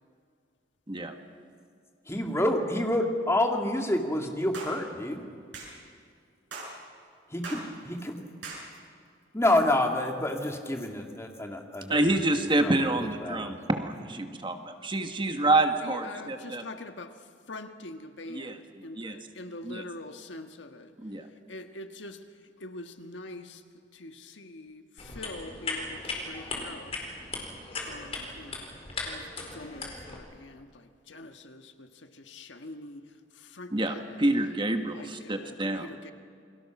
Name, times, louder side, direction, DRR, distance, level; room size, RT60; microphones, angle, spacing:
voice 1, 2.1-5.3 7.3-8.2 9.3-12.1 12.6-13.5, left 1 dB, 15° left, 2 dB, 2.3 m, -28 dB
sound 1, 4.5-4.8 5.5-5.7 6.5-6.7 7.4-7.7 8.4-8.6, right 3 dB, 90° right, 7.0 m, -39 dB
voice 2, 11.9-16.6 18.3-18.6 19.0-19.2 19.6-19.8 21.0-21.3 33.7-35.9, right 2 dB, 25° right, 6 dB, 1.5 m, -27 dB
voice 3, 15.8-17.1 17.5-20.9 21.5-22.2 22.6-23.6 24.0-24.8 25.1-26.9 27.9-28.7 29.0-30.7 31.1-31.9 32.3-33.0 33.5-34.2 34.9-36.1, left 2 dB, 85° left, 7 dB, 1.5 m, -44 dB
sound 2, 25.0-30.2, left 3 dB, 35° left, 4.4 m, -37 dB
29.5 x 22.5 x 6.1 m, 2.2 s
head